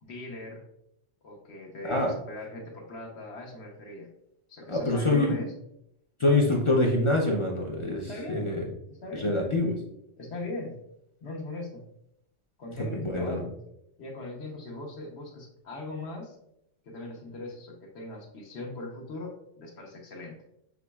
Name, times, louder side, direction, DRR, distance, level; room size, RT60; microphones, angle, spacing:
voice 1, 0.0-0.6 1.2-4.1 4.5-5.5 8.0-8.6 8.9-9.8 10.2-10.8 11.2-11.8 12.6-13.5 14.0-16.4 16.8-20.4, left 2 dB, 70° left, 0 dB, 1.0 m, -40 dB
voice 2, 4.7-5.4 6.2-8.6 9.1-9.7 12.8-13.4, left 2 dB, 45° left, -1 dB, 0.4 m, -25 dB
6.0 x 3.0 x 2.2 m, 0.78 s
omnidirectional pair, 1.2 m